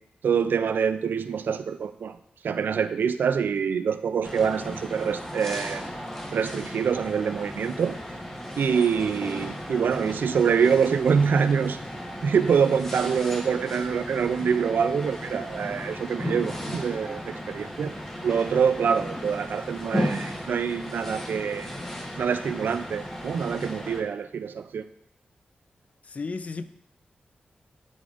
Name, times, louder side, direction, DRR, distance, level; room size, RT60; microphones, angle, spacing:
voice 1, 0.2-2.2 2.4-5.8 6.3-8.0 8.6-11.8 12.2-17.9 18.2-21.7 22.2-24.8, right 6 dB, 85° right, 0.3 m, -25 dB
sound 1, 4.2-24.0, equal, 10° left, 0.9 m, -35 dB
voice 2, 26.1-26.6, left 4 dB, 45° left, 0.3 m, -33 dB
11.0 x 3.8 x 2.4 m
wide cardioid pair, 100°, 3 cm